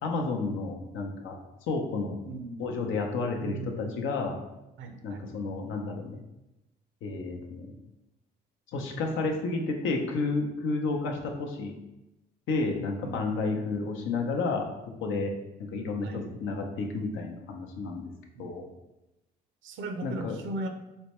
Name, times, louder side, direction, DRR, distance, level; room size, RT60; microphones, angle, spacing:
voice 1, 0.0-1.4 1.7-2.2 2.6-4.4 5.0-6.2 7.0-7.7 8.7-11.7 12.5-14.6 15.0-15.3 15.7-18.1 18.4-18.6 20.0-20.4, left 3 dB, 70° left, 2 dB, 0.7 m, -31 dB
voice 2, 2.2-2.6 3.4-3.9 4.8-5.3 13.0-13.4 16.0-16.3 18.3-18.5 19.6-20.7, right 2 dB, 65° right, 5 dB, 0.5 m, -38 dB
4.2 x 2.1 x 2.9 m, 0.94 s
supercardioid pair, 70°, 21 cm